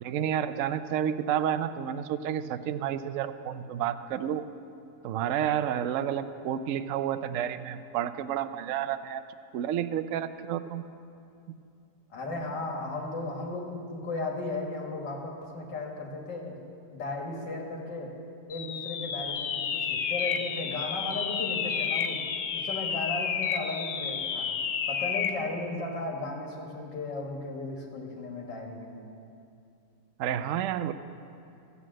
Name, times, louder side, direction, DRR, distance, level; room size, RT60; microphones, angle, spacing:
voice 1, 0.0-4.5 5.0-9.2 9.5-10.8 30.2-30.9, right 10 dB, 70° right, 11 dB, 0.7 m, -30 dB
voice 2, 12.1-16.6 16.9-18.2 18.5-22.3 22.5-24.5 24.9-28.9, left 2 dB, 85° left, 0 dB, 2.3 m, -35 dB
sound 1, 18.5-25.4, left 7 dB, 60° left, 0.8 m, -31 dB
14.0 x 8.4 x 7.6 m, 2.6 s
omnidirectional pair, 1.9 m